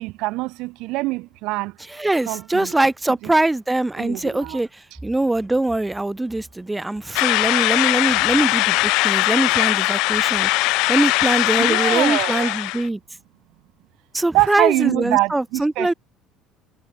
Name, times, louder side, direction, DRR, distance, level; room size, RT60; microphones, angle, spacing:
voice 1, 0.0-1.7 2.3-2.7 4.0-4.6 11.6-12.6 14.3-15.9, right 21 dB, 75° right, 0.9 m, -24 dB
voice 2, 1.9-13.0 14.1-15.9, right 2 dB, 10° right, 0.4 m, -22 dB
sound 1, 7.1-12.9, left 23 dB, 75° left, 0.5 m, -20 dB
cardioid pair, 140°, 0 cm